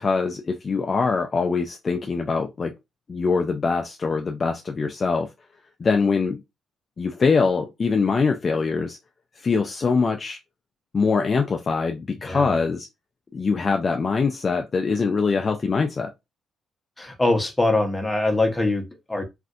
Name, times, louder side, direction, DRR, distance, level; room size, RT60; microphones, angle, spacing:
voice 1, 0.0-2.7 3.1-5.3 5.8-6.4 7.0-9.0 9.4-10.4 10.9-12.9 13.3-16.1, left 4 dB, 35° left, 0.4 m, -23 dB
voice 2, 12.2-12.6 17.0-19.2, left 2 dB, 15° left, 0.9 m, -23 dB
3.3 x 2.5 x 2.4 m
cardioid pair, 90°, 0 cm